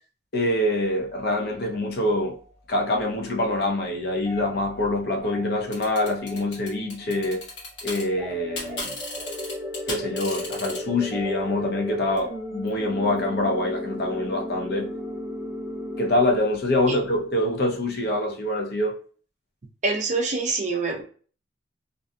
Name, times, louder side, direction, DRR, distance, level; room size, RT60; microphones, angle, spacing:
voice 1, 0.3-2.4 2.7-7.4 7.8-9.0 9.9-14.9 16.0-19.0, left 1 dB, 60° left, 0.6 m, -25 dB
sound 1, 0.8-17.3, left 1 dB, 15° left, 0.9 m, -48 dB
sound 2, 5.7-8.0 8.3-10.8, left 2 dB, 80° left, 1.2 m, -34 dB
sound 3, 8.2-16.2, left 1 dB, 20° right, 1.0 m, -34 dB
voice 2, 19.8-21.0, right 3 dB, 40° right, 0.5 m, -25 dB
2.6 x 2.2 x 2.6 m
head